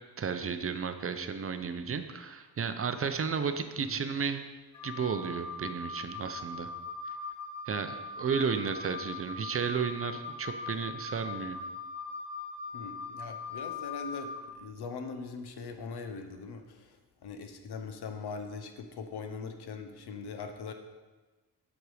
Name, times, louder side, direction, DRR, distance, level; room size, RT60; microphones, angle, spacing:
voice 1, 0.2-4.4 4.8-6.7 7.7-11.6, right 6 dB, 35° right, 9 dB, 0.6 m, -33 dB
Wind instrument woodwind instrument, 4.7-14.4, left 4 dB, 55° left, 1.3 m, -40 dB
voice 2, 12.7-20.7, left 4 dB, 80° left, 6 dB, 1.0 m, -41 dB
7.8 x 6.2 x 4.9 m, 1.2 s
wide cardioid pair, 120°, 39 cm